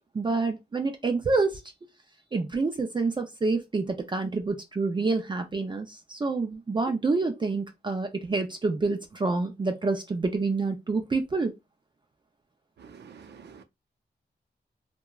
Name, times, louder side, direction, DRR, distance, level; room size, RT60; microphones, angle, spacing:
voice 1, 0.1-1.6 2.3-11.5, right 3 dB, 25° right, 0.4 m, -27 dB
voice 2, 12.8-13.6, right 6 dB, 80° right, 0.5 m, -48 dB
2.9 x 2.2 x 2.3 m
wide cardioid pair, 130°, 18 cm